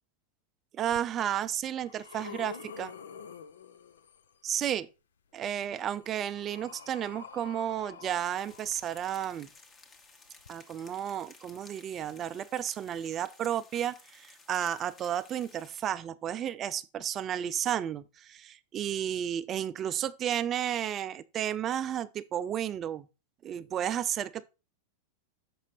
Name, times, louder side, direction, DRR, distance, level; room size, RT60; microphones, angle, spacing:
voice 1, 0.7-2.9 4.4-4.9 5.3-9.5 10.5-23.1 23.4-24.5, right 10 dB, 30° right, 0.4 m, -32 dB
sound 1, 0.9-1.0 1.6-4.3 5.5-9.4 10.4-10.5, left 7 dB, 65° left, 0.5 m, -47 dB
sound 2, 8.4-15.8, left 3 dB, 20° left, 1.1 m, -56 dB
7.3 x 5.4 x 3.9 m
figure-of-eight pair, 90°, 0 cm